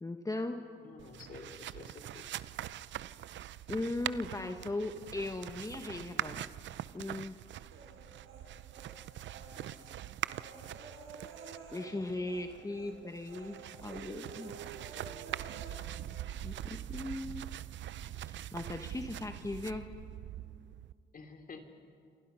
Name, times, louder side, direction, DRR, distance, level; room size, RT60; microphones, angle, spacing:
voice 1, 0.0-0.6 3.7-6.4 6.9-7.4 11.7-14.5 16.4-17.5 18.3-19.9, left 2 dB, 15° left, 6 dB, 1.3 m, -38 dB
voice 2, 0.8-2.3 21.1-21.6, left 4 dB, 45° left, 4 dB, 3.1 m, -50 dB
sound 1, 1.0-20.9, right 12 dB, 65° right, 0.6 m, -43 dB
Human voice, 7.7-8.9 9.2-12.5 12.7-12.9 13.3-15.7, right 5 dB, 85° right, 4.7 m, -50 dB
27.5 x 27.0 x 5.7 m, 2.3 s
cardioid pair, 90°, 20 cm